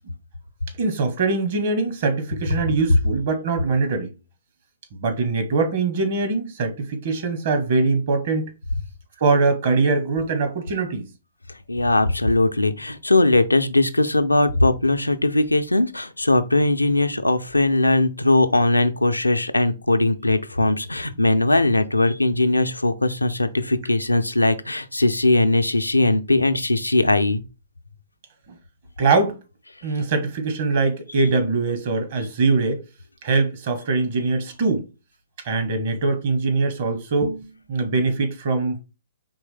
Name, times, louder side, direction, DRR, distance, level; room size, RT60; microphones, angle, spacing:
voice 1, 0.8-4.1 4.9-8.5 9.2-11.1 29.0-29.4 29.8-32.8 33.2-34.8 35.4-38.8, right 3 dB, 50° right, 1.2 m, -22 dB
voice 2, 11.7-27.4, left 2 dB, 90° left, 0.5 m, -20 dB
4.5 x 3.2 x 3.3 m
figure-of-eight pair, 120°, 0 cm